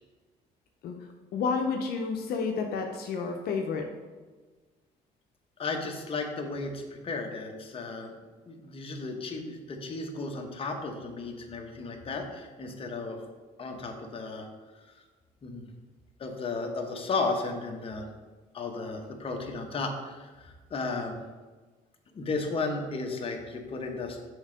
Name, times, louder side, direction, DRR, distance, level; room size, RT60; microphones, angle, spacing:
voice 1, 0.8-3.9, left 5 dB, 70° left, 3 dB, 0.7 m, -31 dB
voice 2, 5.6-8.1 8.5-13.2 13.6-14.5 15.4-15.6 16.2-18.1 18.5-21.1 22.1-24.2, left 3 dB, 35° left, 2 dB, 1.0 m, -34 dB
6.3 x 3.6 x 5.0 m, 1.3 s
cardioid pair, 110°, 17 cm